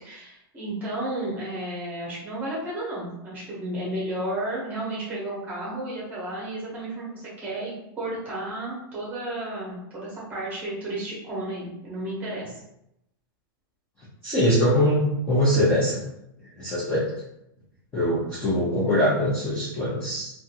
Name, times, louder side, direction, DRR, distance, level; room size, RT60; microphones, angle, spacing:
voice 1, 0.0-12.5, right 1 dB, 15° right, -6 dB, 0.7 m, -32 dB
voice 2, 14.2-16.0 16.6-17.1 17.9-20.3, equal, 5° left, -9 dB, 0.4 m, -22 dB
2.5 x 2.3 x 2.7 m, 0.82 s
supercardioid pair, 180°, 12 cm